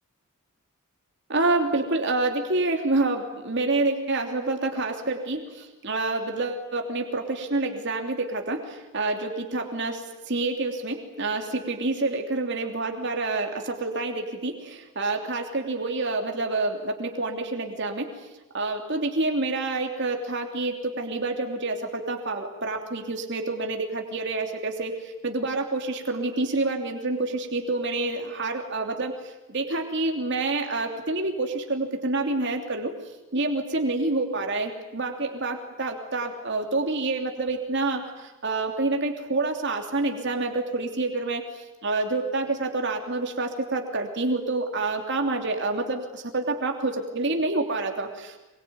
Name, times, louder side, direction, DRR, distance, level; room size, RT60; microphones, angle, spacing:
voice 1, 1.3-10.0 10.3-18.1 18.5-25.0 25.2-29.1 29.5-32.9 33.3-38.0 38.4-41.4 41.8-48.4, right 2 dB, 55° right, 3 dB, 3.1 m, -27 dB
24.0 x 23.5 x 9.5 m, 0.99 s
head